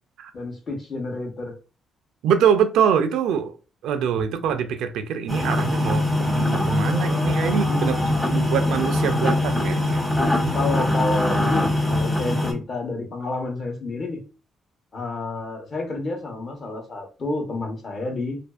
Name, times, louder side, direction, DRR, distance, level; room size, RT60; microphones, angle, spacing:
voice 1, 0.3-1.6 7.6-8.3 10.5-14.2 14.9-18.4, left 2 dB, 45° left, 0.9 m, -29 dB
voice 2, 2.2-3.5 3.8-8.0 8.3-10.0, right 7 dB, 85° right, 0.3 m, -24 dB
sound 1, 5.3-12.5, left 1 dB, 15° left, 0.8 m, -22 dB
2.5 x 2.3 x 2.3 m
cardioid pair, 90°, 0 cm